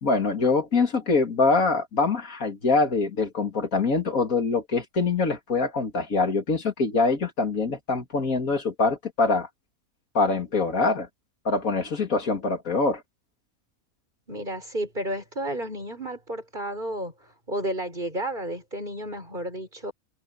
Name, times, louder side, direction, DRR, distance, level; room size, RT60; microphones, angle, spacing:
voice 1, 0.0-9.5 10.1-11.1 11.4-13.0, left 4 dB, 70° left, 3.0 m, -24 dB
voice 2, 14.3-17.1 17.5-19.9, right 1 dB, 35° right, 6.5 m, -32 dB
omnidirectional pair, 1.5 m